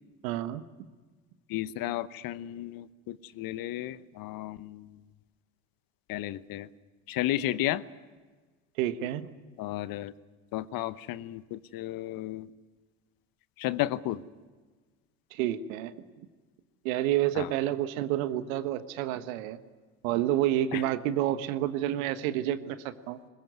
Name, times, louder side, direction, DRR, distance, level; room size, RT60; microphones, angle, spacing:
voice 1, 0.2-0.6 8.8-9.3 15.3-15.9 16.8-19.6 20.0-23.2, right 12 dB, 75° right, 11 dB, 1.4 m, -29 dB
voice 2, 1.5-5.0 6.1-6.7 7.1-7.8 9.6-10.1 10.5-12.5 13.6-14.2 17.4-17.5 20.7-20.8, left 14 dB, 55° left, 16 dB, 1.0 m, -33 dB
21.5 x 21.0 x 9.5 m, 1.4 s
hypercardioid pair, 70°, 41 cm